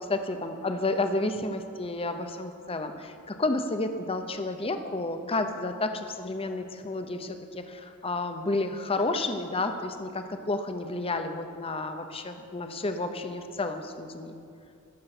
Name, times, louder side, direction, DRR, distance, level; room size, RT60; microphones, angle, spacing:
voice 1, 0.1-14.4, left 2 dB, 25° left, 7 dB, 0.8 m, -31 dB
20.0 x 6.8 x 6.0 m, 2.4 s
head